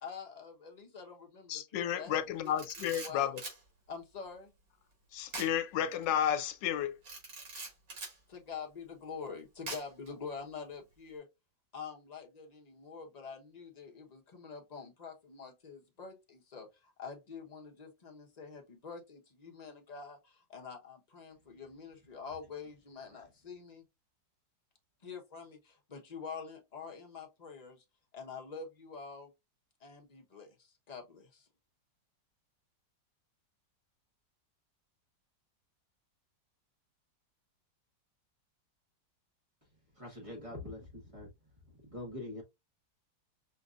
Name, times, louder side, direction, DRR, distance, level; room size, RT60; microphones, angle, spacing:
voice 1, 0.0-2.5 2.8-3.4 3.9-4.5 8.3-11.3 11.7-23.8 25.0-27.8 28.1-29.3 29.8-31.5, left 5 dB, 30° left, 0.8 m, -46 dB
voice 2, 1.5-3.4 5.1-7.0, left 10 dB, 85° left, 1.3 m, -32 dB
Camera, 2.4-3.6 5.3-5.6 5.9-6.0 7.0-8.2 9.7-10.1, right 3 dB, 70° right, 2.7 m, -43 dB
voice 3, 39.9-41.3 41.6-42.4, left 1 dB, 20° right, 1.1 m, -44 dB
5.7 x 2.7 x 2.4 m
omnidirectional pair, 1.9 m